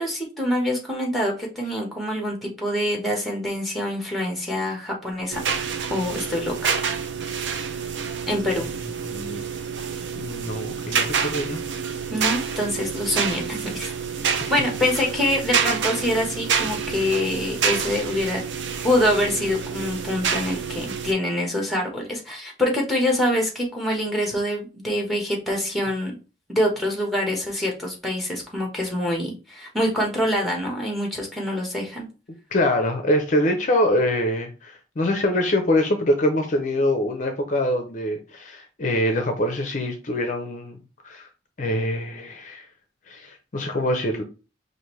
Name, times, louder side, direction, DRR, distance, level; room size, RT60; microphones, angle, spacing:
voice 1, 0.0-5.4 5.9-6.7 8.3-8.6 12.1-13.9 14.5-18.4 18.8-26.1 26.5-32.0, left 1 dB, ahead, 0 dB, 1.0 m, -25 dB
sound 1, 5.3-21.1, right 6 dB, 70° right, 0.5 m, -28 dB
voice 2, 9.1-9.4 10.1-11.6 14.4-14.5 32.5-40.8 41.0-41.3 41.6-42.7 43.1-44.2, left 1 dB, 40° left, 5 dB, 0.5 m, -24 dB
5.0 x 2.6 x 3.1 m, 0.32 s
head